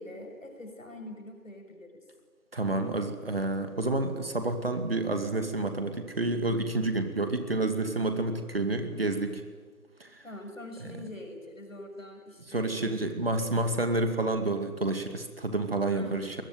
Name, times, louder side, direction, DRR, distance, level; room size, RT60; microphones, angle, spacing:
voice 1, 0.0-2.0 10.2-13.1 13.4-14.0 15.9-16.4, left 1 dB, 60° left, 4 dB, 7.0 m, -44 dB
voice 2, 2.5-9.4 10.0-10.2 12.5-16.4, right 2 dB, 40° right, 7 dB, 2.4 m, -29 dB
24.0 x 21.0 x 9.3 m, 1.4 s
figure-of-eight pair, 160°, 44 cm